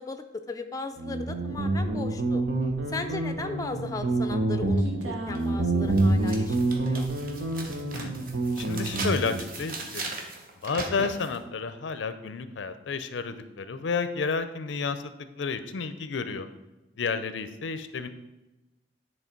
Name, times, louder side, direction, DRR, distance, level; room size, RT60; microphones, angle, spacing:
voice 1, 0.0-2.4 2.9-7.1, left 3 dB, 20° left, 7 dB, 0.4 m, -37 dB
Guitar, 1.0-9.5, right 2 dB, 90° right, 1.1 m, -27 dB
sound 1, 5.3-5.4 5.9-11.4, right 3 dB, 50° right, 1.0 m, -38 dB
voice 2, 8.6-10.1 10.6-16.5 17.0-18.1, left 5 dB, 85° left, 11 dB, 0.5 m, -31 dB
9.5 x 3.2 x 4.5 m, 1.0 s
head